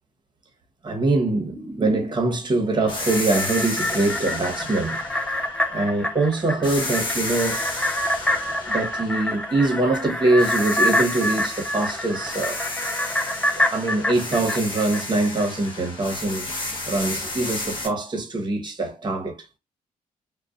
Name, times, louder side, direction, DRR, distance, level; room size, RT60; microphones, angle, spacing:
voice 1, 0.8-5.0 5.7-7.6 8.7-12.6 13.5-16.5 16.9-19.5, right 2 dB, 30° right, 1.0 m, -23 dB
sound 1, 2.9-6.2 6.6-10.0 10.4-17.9, left 2 dB, 30° left, 1.0 m, -33 dB
sound 2, 2.9-15.5 15.8-15.9, left 1 dB, 10° left, 0.5 m, -27 dB
2.3 x 2.2 x 2.4 m
cardioid pair, 70°, 15 cm